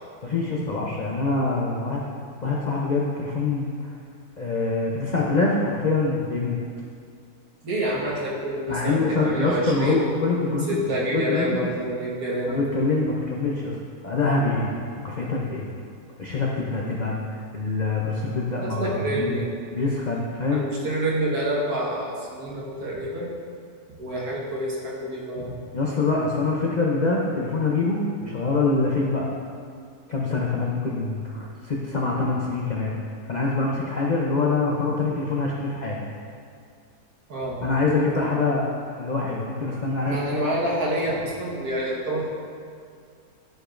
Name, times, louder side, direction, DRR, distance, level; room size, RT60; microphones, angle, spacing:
voice 1, 0.2-2.0 2.4-3.9 4.4-6.6 8.7-11.6 12.5-13.7 14.0-14.7 15.0-15.7 16.2-19.4 19.7-20.6 25.7-29.3 30.1-32.9 33.3-36.0 37.6-38.6 39.0-40.2, left 3 dB, 85° left, -3 dB, 0.3 m, -25 dB
voice 2, 7.6-10.0 10.7-12.6 18.6-19.5 20.5-23.3 24.0-25.5 37.3-37.6 40.1-42.3, right 1 dB, 70° right, -5 dB, 1.8 m, -27 dB
11.5 x 4.9 x 2.5 m, 2.2 s
omnidirectional pair, 1.7 m